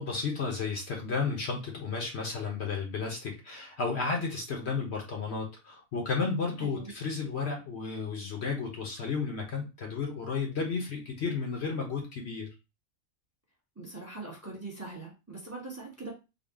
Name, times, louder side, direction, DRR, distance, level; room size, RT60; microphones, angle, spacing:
voice 1, 0.0-12.5, left 4 dB, 55° left, 1 dB, 1.1 m, -33 dB
voice 2, 6.6-6.9 13.8-16.1, right 3 dB, 15° right, -1 dB, 0.9 m, -42 dB
3.8 x 2.3 x 3.5 m, 0.28 s
omnidirectional pair, 1.4 m